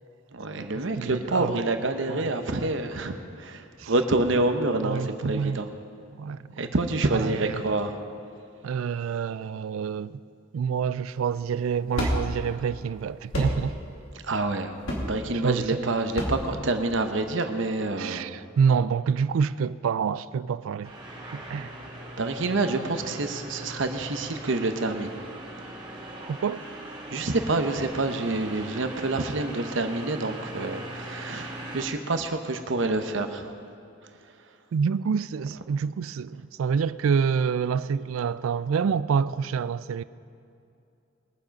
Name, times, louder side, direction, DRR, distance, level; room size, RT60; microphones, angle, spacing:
voice 1, 0.3-5.7 6.6-7.9 14.2-14.7 15.0-18.3 22.2-25.1 27.1-33.5, right 2 dB, 65° right, 0.9 m, -27 dB
voice 2, 1.0-1.7 2.1-2.7 3.8-3.9 4.8-5.6 6.2-6.6 7.1-7.6 8.6-10.2 10.5-13.8 15.4-15.6 18.0-20.9 21.3-21.7 26.3-26.6 34.7-40.0, right 6 dB, 85° right, 0.3 m, -27 dB
sound 1, 11.1-17.3, equal, 85° left, 2.6 m, -32 dB
sound 2, 20.8-31.8, right 1 dB, 25° right, 2.4 m, -40 dB
21.5 x 7.4 x 5.2 m
head